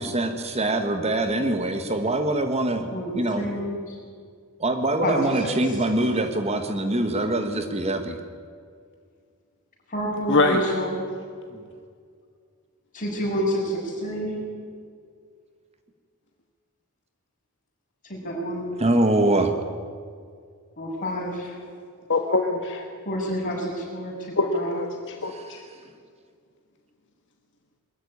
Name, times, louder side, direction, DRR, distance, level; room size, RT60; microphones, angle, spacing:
voice 1, 0.0-2.8 3.1-3.5 4.6-8.2 18.8-19.5, right 2 dB, 30° right, 7 dB, 1.3 m, -23 dB
voice 2, 2.9-4.0 5.0-5.6 9.9-11.0 12.9-14.3 18.0-18.7 20.8-21.6 23.1-24.8, equal, 35° left, -3 dB, 7.2 m, -29 dB
voice 3, 10.3-10.6 22.1-22.9 24.4-24.9 25.2-25.6, left 3 dB, 55° left, 3 dB, 1.5 m, -23 dB
22.0 x 14.0 x 9.8 m, 2.1 s
head